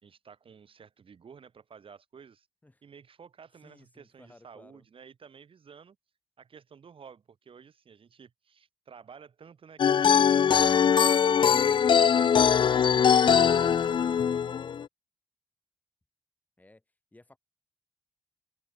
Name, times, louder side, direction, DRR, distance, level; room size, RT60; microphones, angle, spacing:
voice 1, 0.0-2.5 2.8-6.0 6.4-11.5 11.9-14.6, right 6 dB, 65° right, 4.6 m, -52 dB
voice 2, 3.6-4.8 16.6-16.8 17.1-17.4, left 2 dB, 15° left, 5.6 m, -58 dB
sound 1, 9.8-14.8, left 7 dB, 55° left, 0.4 m, -21 dB
open air
wide cardioid pair, 115°, 10 cm